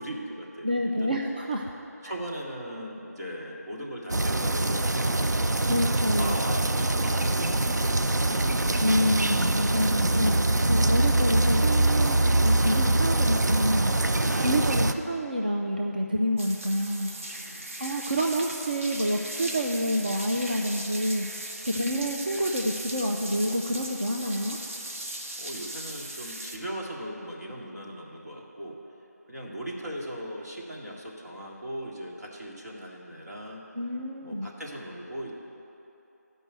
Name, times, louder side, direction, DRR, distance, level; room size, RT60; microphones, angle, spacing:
voice 1, 0.0-1.2 2.0-5.5 6.2-8.7 14.2-14.9 17.3-17.7 21.7-21.8 25.4-28.8 29.3-33.6 34.2-35.3, equal, 70° right, -2 dB, 1.9 m, -39 dB
voice 2, 0.6-1.6 2.0-2.1 5.7-6.3 8.8-10.3 10.7-13.9 14.4-17.1 17.8-24.6 33.7-34.5, equal, 30° right, 1 dB, 0.4 m, -28 dB
sound 1, 4.1-14.9, right 2 dB, 90° right, 0.5 m, -24 dB
sound 2, 16.4-26.6, right 1 dB, 50° right, 1.0 m, -38 dB
10.0 x 5.4 x 7.8 m, 2.9 s
figure-of-eight pair, 170°, 9 cm